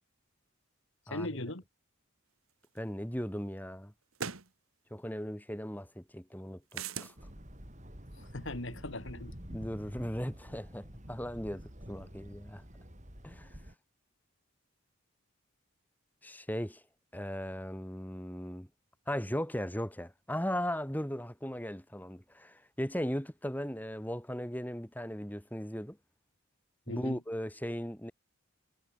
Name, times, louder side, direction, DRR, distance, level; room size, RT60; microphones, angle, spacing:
voice 1, 1.1-1.6 8.2-9.3 26.9-27.2, left 1 dB, 60° left, 2.7 m, -39 dB
voice 2, 2.7-3.9 4.9-7.1 9.5-12.6 13.2-13.5 16.2-16.8 17.1-18.7 19.1-26.0 26.9-28.1, equal, 10° left, 4.4 m, -37 dB
sound 1, 2.8-2.9 4.1-4.5 6.7-7.1, right 6 dB, 80° right, 2.3 m, -38 dB
sound 2, 7.2-13.7, equal, 35° right, 6.8 m, -49 dB
head